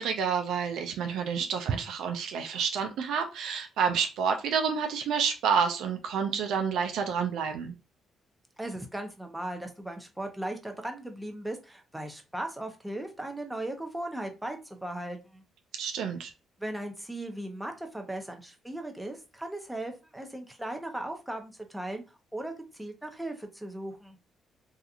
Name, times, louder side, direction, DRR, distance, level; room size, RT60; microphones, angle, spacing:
voice 1, 0.0-7.7 15.8-16.3, right 6 dB, 80° right, 5 dB, 0.3 m, -29 dB
voice 2, 8.6-15.4 16.6-22.0 22.3-24.2, right 1 dB, 5° right, 4 dB, 0.6 m, -37 dB
2.7 x 2.4 x 2.4 m, 0.29 s
cardioid pair, 90°, 0 cm